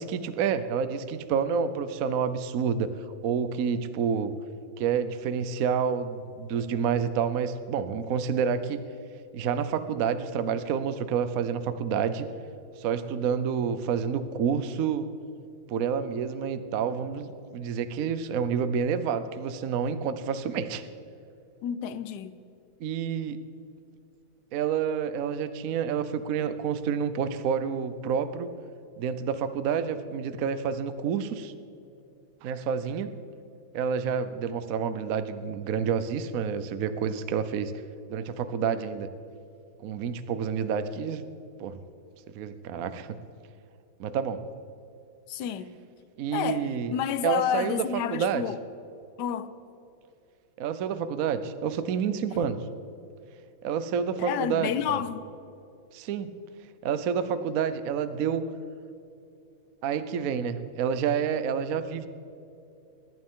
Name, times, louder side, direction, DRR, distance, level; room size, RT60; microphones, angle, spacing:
voice 1, 0.0-2.9 3.2-4.3 4.8-8.8 9.3-12.3 12.8-15.1 15.7-20.9 22.8-23.4 24.5-28.5 29.0-31.5 32.4-33.1 33.7-37.7 38.1-39.1 39.8-41.2 41.6-41.8 42.3-43.2 44.0-44.4 46.2-46.9 47.2-47.8 48.1-48.4 50.6-52.6 53.6-55.0 55.9-56.3 56.8-58.4 59.8-62.1, right 7 dB, 60° right, 11 dB, 0.9 m, -28 dB
voice 2, 21.6-22.4 45.3-45.7 46.3-48.6 49.2-49.5 54.2-55.2, left 9 dB, 65° left, 13 dB, 1.2 m, -30 dB
22.0 x 11.5 x 3.7 m, 2.6 s
omnidirectional pair, 2.2 m